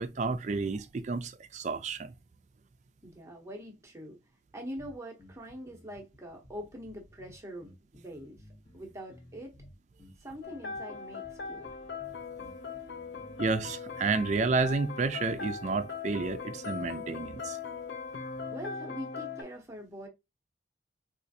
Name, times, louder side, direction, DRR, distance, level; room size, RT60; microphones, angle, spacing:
voice 1, 0.0-2.1 13.4-17.6, right 4 dB, 40° right, 0.3 m, -31 dB
voice 2, 3.0-4.2 4.5-8.5 8.7-9.6 10.2-11.7 18.5-20.1, equal, 15° right, 0.8 m, -43 dB
sound 1, 4.8-14.4, equal, 20° left, 0.9 m, -56 dB
sound 2, 10.4-19.4, left 5 dB, 70° left, 0.6 m, -40 dB
4.2 x 2.4 x 2.6 m
head